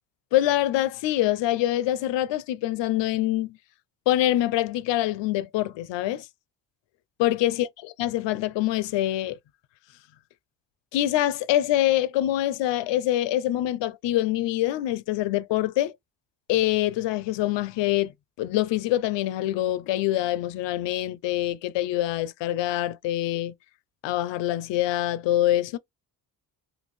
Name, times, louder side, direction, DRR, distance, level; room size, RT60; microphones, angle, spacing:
voice 1, 0.3-3.6 4.1-6.3 7.2-9.4 10.9-15.9 16.5-18.1 18.4-23.5 24.0-25.8, left 14 dB, 70° left, 0.5 m, -25 dB
2.6 x 2.6 x 3.1 m
supercardioid pair, 65°, 45 cm